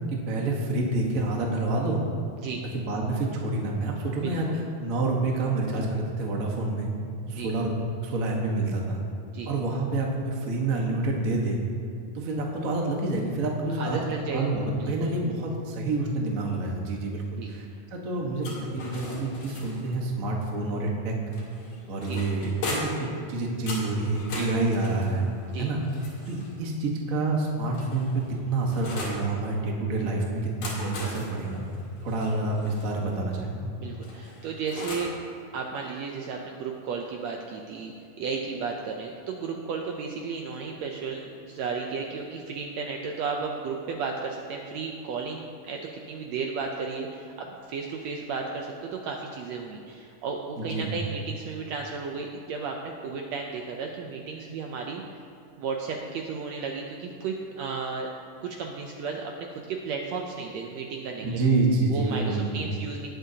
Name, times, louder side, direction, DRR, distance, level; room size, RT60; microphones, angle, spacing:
voice 1, 0.1-2.0 2.7-4.5 4.8-6.9 7.3-7.7 8.0-9.0 9.4-11.6 12.1-14.0 14.3-17.6 17.9-21.1 21.9-22.9 23.3-25.3 25.6-25.8 26.3-28.1 28.5-31.6 32.0-33.7 50.6-50.9 61.2-62.6, right 2 dB, 55° right, -1 dB, 0.9 m, -28 dB
voice 2, 4.2-4.6 7.3-7.5 9.3-9.5 13.8-14.5 14.8-15.1 17.4-17.5 22.1-22.2 25.5-25.7 33.8-35.2 35.5-45.8 46.1-55.2 55.6-58.1 58.4-61.4 61.9-63.1, right 5 dB, 75° right, 1 dB, 1.6 m, -34 dB
sound 1, 18.4-20.0 21.3-23.1 23.7-26.6 27.4-29.2 30.4-32.9 34.0-35.2, left 2 dB, 90° left, 3.6 m, -38 dB
19.5 x 7.3 x 2.8 m, 2.7 s
omnidirectional pair, 3.7 m